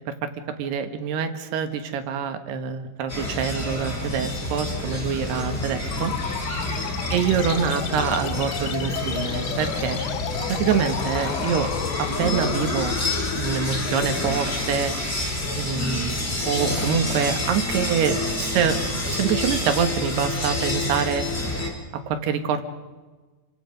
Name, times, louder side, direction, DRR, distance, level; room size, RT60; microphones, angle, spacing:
voice 1, 0.6-6.1 7.1-10.0 10.5-11.7 12.0-12.9 13.3-14.9 15.6-16.2 16.4-18.8 19.1-21.3 22.1-22.7, right 7 dB, 75° right, 7 dB, 3.5 m, -25 dB
sound 1, 3.1-21.7, left 1 dB, 15° left, 4.0 m, -28 dB
sound 2, 5.9-16.9, left 11 dB, 90° left, 3.3 m, -33 dB
30.0 x 24.5 x 5.3 m, 1.3 s
omnidirectional pair, 4.8 m